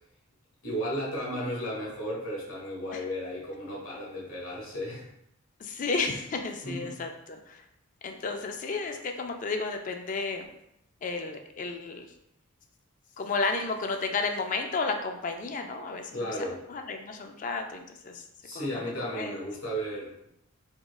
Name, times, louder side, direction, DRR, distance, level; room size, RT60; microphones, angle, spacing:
voice 1, 0.6-5.1 6.6-6.9 16.1-16.6 18.4-20.3, equal, 80° left, -5 dB, 1.3 m, -34 dB
voice 2, 5.6-7.6 8.0-10.5 11.0-12.0 13.2-16.3 16.7-18.2 18.5-18.7 19.1-19.4, left 4 dB, 35° left, 5 dB, 0.3 m, -32 dB
3.6 x 3.0 x 2.3 m, 0.78 s
head